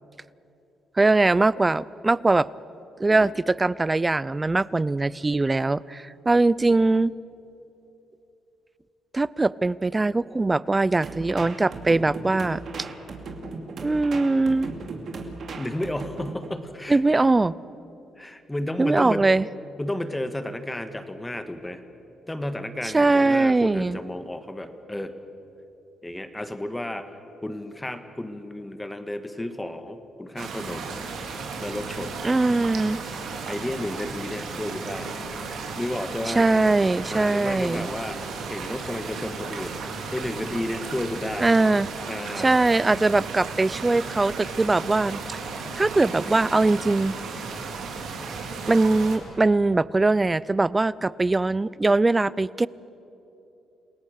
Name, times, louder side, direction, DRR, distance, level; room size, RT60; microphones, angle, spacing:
voice 1, 1.0-2.5 3.0-7.1 9.1-12.6 13.8-14.7 16.9-17.5 18.8-19.4 22.9-24.0 32.2-33.0 36.3-37.9 41.4-41.9 42.4-45.4 45.7-47.5 48.7-52.7, right 2 dB, 20° right, 21 dB, 0.5 m, -21 dB
sound 1, 11.0-16.5, right 3 dB, 55° right, 2.5 m, -37 dB
voice 2, 15.6-17.0 18.2-19.3 19.8-21.8 22.3-25.1 26.0-27.2 27.4-31.0 31.6-32.2 33.5-35.1 35.8-36.5 37.1-39.8 40.1-41.5 42.1-42.5, left 1 dB, 10° left, 9 dB, 1.6 m, -32 dB
sound 2, 30.4-49.2, right 4 dB, 75° right, 3.3 m, -35 dB
29.0 x 18.0 x 6.6 m, 2.9 s
cardioid pair, 90°, 0 cm